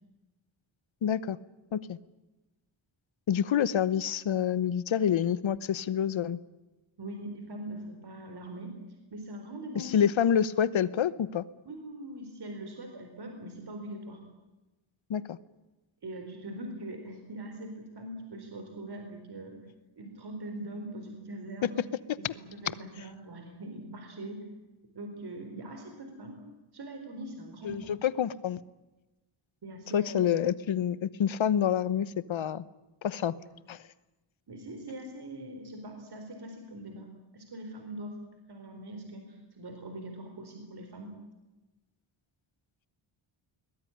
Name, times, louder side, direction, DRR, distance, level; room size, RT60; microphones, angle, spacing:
voice 1, 1.0-1.4 1.7-2.0 3.3-6.4 9.7-11.4 15.1-15.4 22.2-22.3 27.6-28.6 29.9-32.7 33.0-33.3 33.7-33.8, left 9 dB, 70° left, 17 dB, 1.1 m, -27 dB
voice 2, 7.0-8.8 9.1-10.0 11.7-14.2 16.0-19.6 20.0-21.8 22.2-24.5 24.9-26.4 26.7-27.9 29.6-30.4 33.4-33.5 34.5-38.2 38.5-41.2, right 1 dB, 50° right, 5 dB, 4.3 m, -42 dB
22.0 x 20.0 x 10.0 m, 1.1 s
wide cardioid pair, 150°, 49 cm